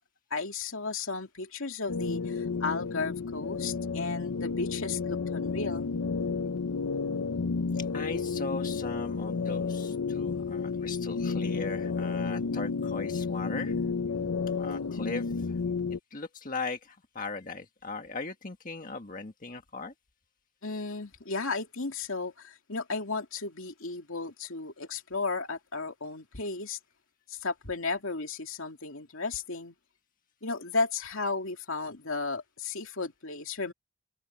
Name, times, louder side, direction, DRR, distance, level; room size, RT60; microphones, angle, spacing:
voice 1, 0.3-5.9 20.6-26.8 27.3-29.7 30.4-33.7, left 4 dB, 70° left, 2.6 m, -34 dB
sound 1, 1.9-16.0, left 4 dB, 85° left, 0.6 m, -31 dB
voice 2, 7.7-13.7 14.5-15.6 16.1-19.9, left 3 dB, 40° left, 1.6 m, -38 dB
head